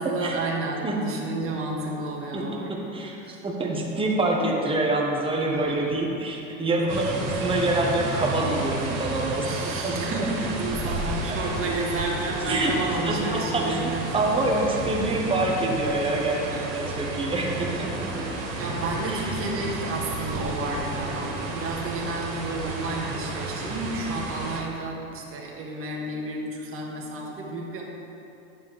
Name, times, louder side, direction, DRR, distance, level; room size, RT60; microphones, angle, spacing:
voice 1, 0.0-2.8 3.2-3.4 5.5-5.9 6.7-7.2 9.4-14.7 16.5-16.8 18.6-27.8, right 2 dB, 35° right, -2 dB, 1.7 m, -31 dB
voice 2, 3.4-10.2 11.1-11.2 12.5-12.7 13.0-16.4 16.7-18.3 19.1-19.3, right 2 dB, 15° right, -1 dB, 1.2 m, -26 dB
sound 1, 6.9-24.6, right 2 dB, 75° right, 2.0 m, -32 dB
9.5 x 7.4 x 3.3 m, 2.8 s
supercardioid pair, 105°, 38 cm